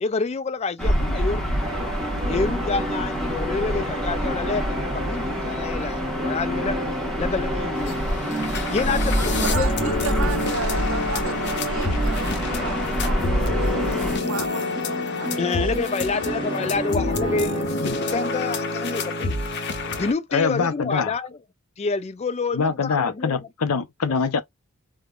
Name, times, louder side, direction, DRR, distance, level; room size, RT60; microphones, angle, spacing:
voice 1, 0.0-1.5 2.3-6.8 7.2-8.0 8.7-10.2 11.4-11.5 12.5-12.6 13.9-14.0 15.4-19.3 20.0-21.4 21.8-23.5 24.1-24.2, left 4 dB, 30° left, 0.3 m, -28 dB
Gull seagull / Ocean, 0.8-14.2, equal, 5° left, 0.9 m, -27 dB
sound 1, 1.6-17.6, right 1 dB, 25° right, 0.8 m, -32 dB
sound 2, 7.9-8.0 8.2-20.1, left 3 dB, 50° left, 0.7 m, -28 dB
voice 2, 9.4-15.7 16.1-16.3 16.7-16.8, right 6 dB, 60° right, 0.5 m, -35 dB
voice 3, 20.3-21.1 22.5-24.4, left 5 dB, 85° left, 0.6 m, -24 dB
3.5 x 2.2 x 2.3 m
head